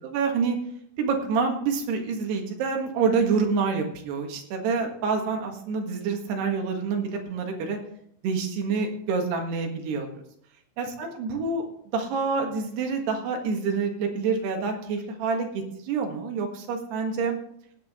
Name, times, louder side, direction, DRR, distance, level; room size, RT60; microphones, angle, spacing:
voice 1, 0.0-0.6 1.0-7.8 8.2-10.1 10.8-11.6 11.9-17.4, right 5 dB, 75° right, 3 dB, 3.7 m, -27 dB
16.5 x 9.2 x 3.7 m, 0.71 s
omnidirectional pair, 4.7 m